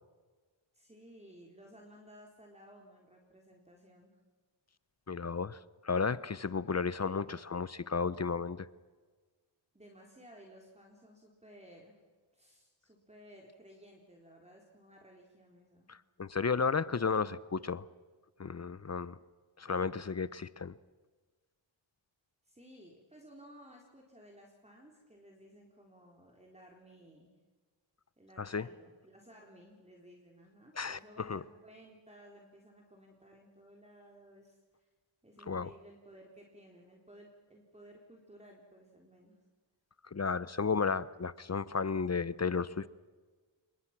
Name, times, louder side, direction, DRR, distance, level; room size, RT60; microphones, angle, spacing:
voice 1, 0.7-4.2 9.7-12.0 12.3-15.9 22.4-27.3 28.2-34.9 35.2-39.4, equal, 15° right, 0 dB, 4.0 m, -57 dB
voice 2, 5.1-5.6 5.8-8.7 15.9-17.8 18.4-19.2 19.6-20.7 28.4-28.7 30.8-31.4 35.5-35.7 40.1-42.9, left 5 dB, 35° left, 17 dB, 0.8 m, -33 dB
27.0 x 22.5 x 6.1 m, 1.4 s
cardioid pair, 65°, 47 cm